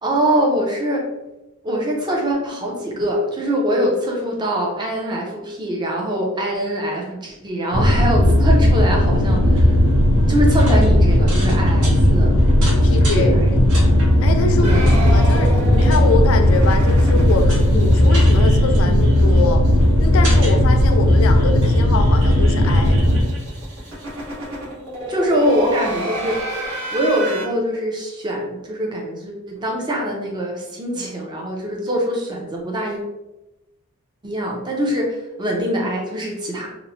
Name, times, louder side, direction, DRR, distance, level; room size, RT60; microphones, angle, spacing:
voice 1, 0.0-1.1 1.6-9.8 10.3-12.4 12.8-13.9 14.6-14.8 25.1-33.0 34.2-36.7, equal, 20° right, -1 dB, 0.5 m, -23 dB
sound 1, 7.7-23.2, left 1 dB, 90° right, 0.8 m, -15 dB
voice 2, 12.8-13.3 14.2-19.6 20.0-23.0, left 4 dB, 65° left, 6 dB, 0.4 m, -24 dB
sound 2, 14.6-19.7 20.0-20.1 20.4-20.5 20.7-27.4, right 1 dB, 65° right, 1.1 m, -31 dB
2.9 x 2.0 x 2.6 m, 0.99 s
head